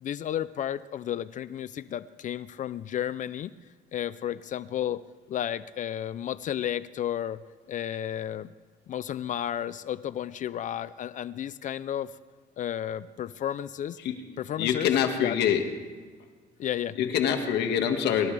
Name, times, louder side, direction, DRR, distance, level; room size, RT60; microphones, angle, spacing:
voice 1, 0.0-3.5 3.9-5.0 5.3-7.4 7.7-8.5 8.9-12.1 12.6-14.0 14.4-14.9 15.2-15.4 16.6-17.0, left 10 dB, 50° left, 16 dB, 0.5 m, -32 dB
voice 2, 14.6-15.7 17.0-18.3, left 8 dB, 80° left, 5 dB, 1.8 m, -25 dB
25.0 x 13.5 x 3.4 m, 1.5 s
cardioid pair, 110°, 17 cm